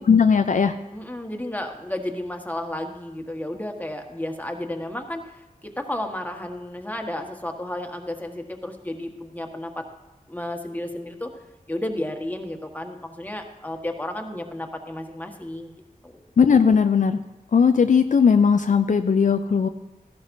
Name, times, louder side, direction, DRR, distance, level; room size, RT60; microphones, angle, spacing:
voice 1, 0.1-0.8 16.4-17.2 17.5-19.7, left 6 dB, 60° left, 8 dB, 0.4 m, -18 dB
voice 2, 0.9-5.4 5.6-9.9 10.3-11.3 11.7-15.7 16.0-16.2, left 1 dB, 10° left, 3 dB, 1.4 m, -32 dB
14.0 x 12.0 x 2.7 m, 1.1 s
cardioid pair, 40°, 14 cm